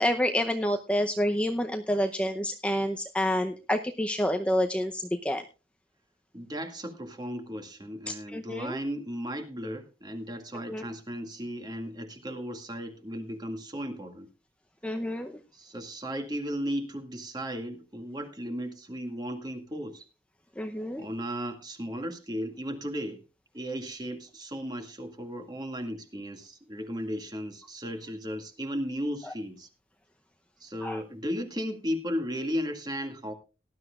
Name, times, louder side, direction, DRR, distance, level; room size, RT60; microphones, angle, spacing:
voice 1, 0.0-5.4 8.1-8.8 10.7-10.8 14.8-15.3 20.6-21.0 30.8-31.0, equal, 5° left, 5 dB, 0.7 m, -28 dB
voice 2, 6.3-14.3 15.5-20.1 21.0-23.2 23.5-29.7 30.6-33.3, equal, 20° right, 6 dB, 2.1 m, -35 dB
18.5 x 12.0 x 2.4 m, 0.31 s
head